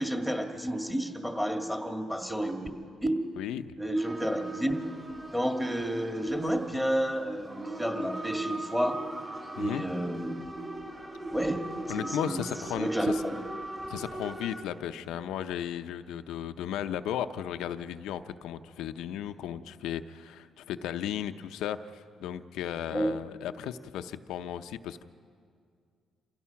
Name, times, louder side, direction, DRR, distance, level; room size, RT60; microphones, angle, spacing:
voice 1, 0.0-2.7 3.0-3.2 3.8-4.8 5.3-9.0 9.5-10.4 11.3-11.7 12.0-12.4 12.7-13.3 22.9-23.1, right 1 dB, 5° right, 4 dB, 1.9 m, -30 dB
voice 2, 3.4-3.7 9.6-9.8 11.9-13.2 13.9-25.0, left 10 dB, 90° left, 10 dB, 0.7 m, -35 dB
sound 1, 3.9-14.6, right 2 dB, 25° right, 4.4 m, -40 dB
28.0 x 16.0 x 5.9 m, 2.2 s
cardioid pair, 90°, 0 cm